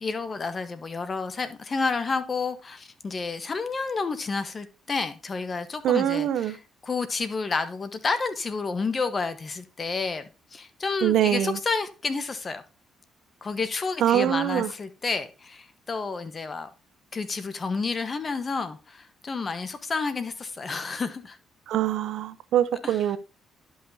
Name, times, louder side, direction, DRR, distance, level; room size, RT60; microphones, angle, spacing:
voice 1, 0.0-12.6 13.4-16.7 17.1-21.4 22.8-23.0, left 4 dB, 35° left, 1.1 m, -30 dB
voice 2, 5.8-6.6 11.0-11.6 14.0-14.7 21.7-23.2, right 11 dB, 80° right, 0.6 m, -23 dB
11.0 x 5.7 x 2.7 m
cardioid pair, 90°, 0 cm